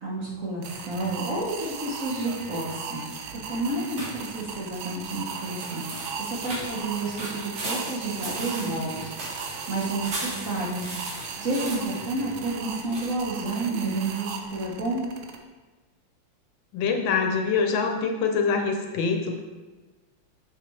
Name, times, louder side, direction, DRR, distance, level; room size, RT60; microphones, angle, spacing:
voice 1, 0.0-3.0 3.3-5.8 6.2-10.9 11.4-15.0, right 2 dB, 50° right, -3 dB, 1.2 m, -30 dB
sound 1, 0.6-15.4, right 6 dB, 90° right, 1.5 m, -37 dB
sound 2, 4.0-13.0, right 1 dB, 70° right, 2.2 m, -38 dB
voice 2, 16.7-19.4, left 5 dB, 75° left, 3 dB, 1.3 m, -25 dB
6.3 x 6.0 x 3.2 m, 1.3 s
omnidirectional pair, 2.2 m